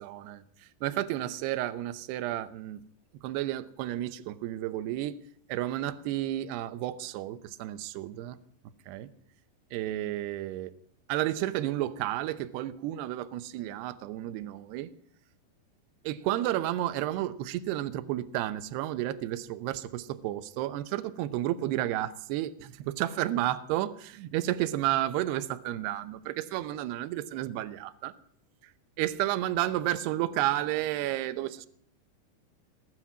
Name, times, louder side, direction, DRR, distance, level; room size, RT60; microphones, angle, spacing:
voice 1, 0.0-2.8 3.2-5.2 5.5-8.4 8.9-9.1 9.7-10.7 11.1-14.9 16.0-28.1 28.6-28.7 29.0-31.7, right 14 dB, 75° right, 12 dB, 2.7 m, -32 dB
20.0 x 9.6 x 7.5 m, 0.64 s
omnidirectional pair, 5.2 m